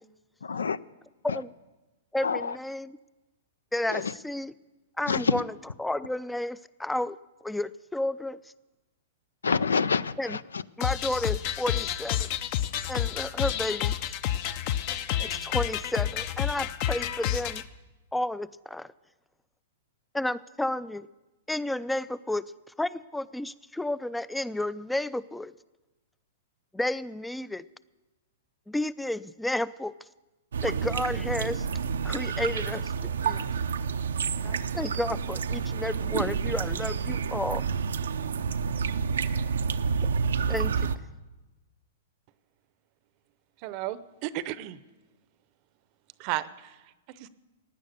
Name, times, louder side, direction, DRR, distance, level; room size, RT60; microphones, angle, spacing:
voice 1, 0.4-0.8 1.3-1.4 2.2-2.6 3.9-4.1 5.1-5.4 9.4-10.6, left 5 dB, 90° left, 0.4 m, -27 dB
voice 2, 2.1-3.0 3.7-4.5 5.0-5.4 5.8-7.2 7.4-8.4 10.2-10.4 10.8-12.3 12.9-14.0 15.2-17.6 18.1-18.9 20.1-21.1 21.5-22.4 22.8-25.5 26.7-27.6 28.7-29.9 30.6-31.7 32.0-33.4 34.4-37.6 40.5-40.7, left 1 dB, 5° left, 0.4 m, -31 dB
sound 1, 10.8-17.6, left 11 dB, 45° left, 0.6 m, -30 dB
sound 2, 30.5-41.0, right 6 dB, 80° right, 0.6 m, -29 dB
voice 3, 43.6-44.8 46.2-46.8 47.2-47.3, right 14 dB, 45° right, 0.7 m, -33 dB
16.5 x 9.9 x 6.7 m
hypercardioid pair, 120°, 0 cm